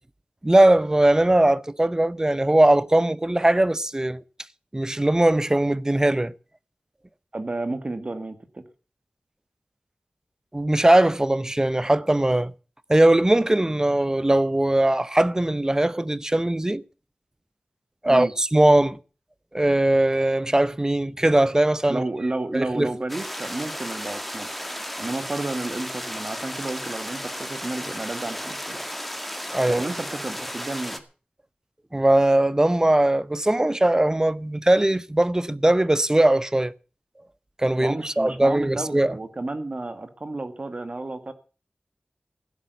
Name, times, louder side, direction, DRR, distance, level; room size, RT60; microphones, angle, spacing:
voice 1, 0.4-4.2 4.7-6.3 10.5-12.5 12.9-16.8 18.0-19.0 19.5-22.0 22.5-22.9 29.5-29.8 31.9-36.7 37.6-39.2, right 1 dB, 20° right, 0.7 m, -20 dB
voice 2, 7.3-8.6 18.1-18.3 21.9-24.5 25.0-28.8 29.7-31.0 37.8-41.3, right 2 dB, 45° right, 1.8 m, -31 dB
sound 1, 23.1-31.0, equal, 5° left, 1.9 m, -34 dB
15.5 x 8.6 x 8.1 m
wide cardioid pair, 80°, 3 cm